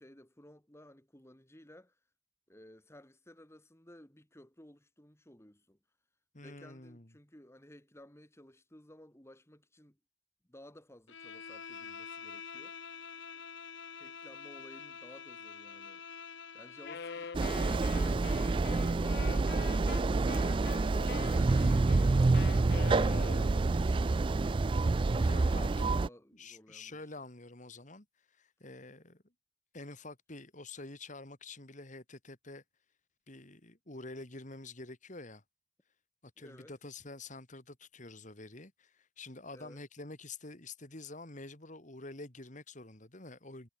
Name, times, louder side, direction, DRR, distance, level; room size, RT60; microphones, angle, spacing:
voice 1, 0.0-2.0 2.5-5.8 6.4-10.0 10.5-12.8 13.6-16.0 16.5-20.0 21.0-27.3 36.4-36.7 39.5-39.8, left 1 dB, 15° left, 2.7 m, -56 dB
voice 2, 6.3-7.1 20.9-21.4 25.2-25.8 26.3-28.1 28.4-29.2 29.7-32.6 33.3-35.4 36.4-43.7, left 2 dB, 40° left, 2.8 m, -48 dB
Bowed string instrument, 11.1-17.5, left 6 dB, 85° left, 6.2 m, -47 dB
Wind instrument woodwind instrument, 16.8-23.8, left 5 dB, 60° left, 0.6 m, -45 dB
sound 1, 17.3-26.1, right 3 dB, 25° right, 0.3 m, -28 dB
head